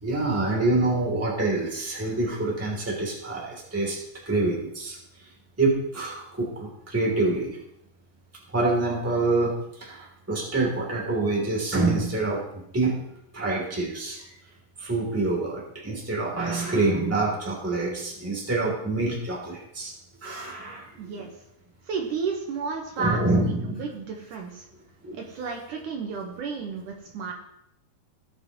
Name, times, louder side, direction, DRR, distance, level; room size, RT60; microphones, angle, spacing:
voice 1, 0.0-4.0 4.2-5.0 5.6-7.6 8.5-13.0 13.3-14.2 14.8-19.9 20.2-21.0 23.0-23.8 25.0-25.2, right 2 dB, 5° right, -3 dB, 2.3 m, -26 dB
voice 2, 21.0-21.3 21.9-24.7 25.1-27.3, right 5 dB, 70° right, 1 dB, 2.5 m, -32 dB
17.0 x 8.1 x 3.0 m, 0.79 s
omnidirectional pair, 4.1 m